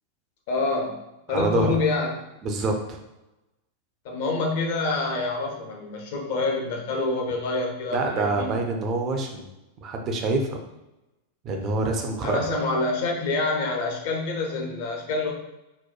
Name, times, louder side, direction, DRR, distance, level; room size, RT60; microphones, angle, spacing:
voice 1, 0.5-1.0 1.3-2.1 4.0-8.5 12.2-15.3, left 3 dB, 50° left, 1 dB, 0.6 m, -26 dB
voice 2, 1.3-1.7 2.4-3.0 7.9-9.4 9.8-10.6 11.4-12.4, right 3 dB, 30° right, 3 dB, 0.5 m, -26 dB
4.1 x 2.2 x 2.2 m, 0.95 s
figure-of-eight pair, 90°, 0 cm